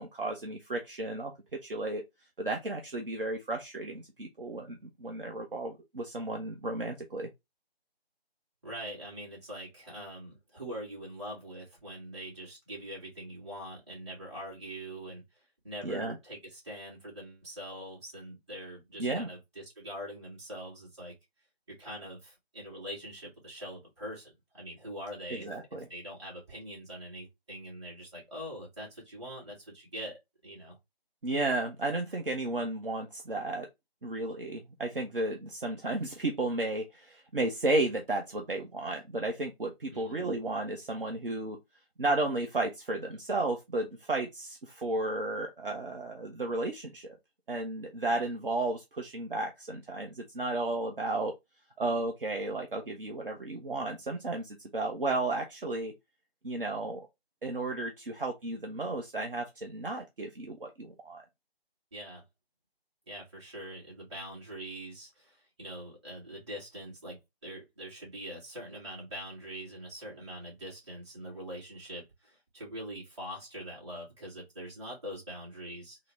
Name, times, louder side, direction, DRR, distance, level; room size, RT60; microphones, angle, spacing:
voice 1, 0.0-2.0 2.4-7.3 15.8-16.2 19.0-19.3 25.3-25.9 31.2-33.7 34.0-41.6 42.0-47.2 47.5-51.3 51.8-55.9 56.4-57.1 57.4-61.2, right 2 dB, 60° right, 0.7 m, -33 dB
voice 2, 8.6-21.1 21.7-25.5 25.9-30.8 39.9-40.3 61.9-62.2 63.1-76.0, equal, 25° right, 2.0 m, -43 dB
3.8 x 2.0 x 3.1 m
figure-of-eight pair, 165°, 31 cm